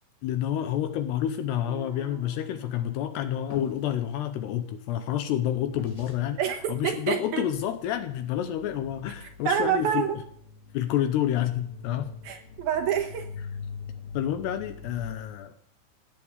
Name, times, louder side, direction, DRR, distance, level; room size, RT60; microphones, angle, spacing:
voice 1, 0.2-6.4 6.7-10.1 10.7-12.1 14.1-15.5, left 11 dB, 75° left, 10 dB, 2.7 m, -29 dB
sound 1, 1.5-3.6, left 1 dB, 20° right, 2.6 m, -50 dB
sound 2, 3.5-3.9 5.8-6.2, left 2 dB, 10° left, 4.9 m, -44 dB
sound 3, 5.5-15.2, left 5 dB, 45° left, 3.5 m, -44 dB
voice 2, 6.4-7.4 9.2-10.2 12.2-13.3, right 9 dB, 70° right, 3 dB, 2.6 m, -27 dB
17.0 x 8.2 x 8.1 m, 0.65 s
omnidirectional pair, 5.4 m